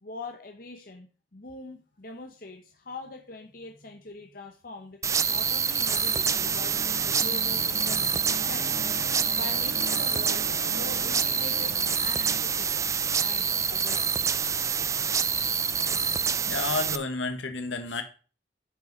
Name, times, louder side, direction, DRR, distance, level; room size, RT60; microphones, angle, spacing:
voice 1, 0.0-5.0 5.3-6.8 7.0-12.9 13.2-14.2, left 2 dB, 50° left, 4 dB, 0.9 m, -43 dB
sound 1, 5.0-17.0, right 6 dB, 15° right, 0.3 m, -26 dB
sound 2, 6.0-12.4, right 1 dB, 70° right, 3.2 m, -40 dB
voice 2, 16.5-18.0, left 3 dB, 85° left, 6 dB, 1.3 m, -30 dB
8.9 x 5.4 x 5.3 m, 0.36 s
head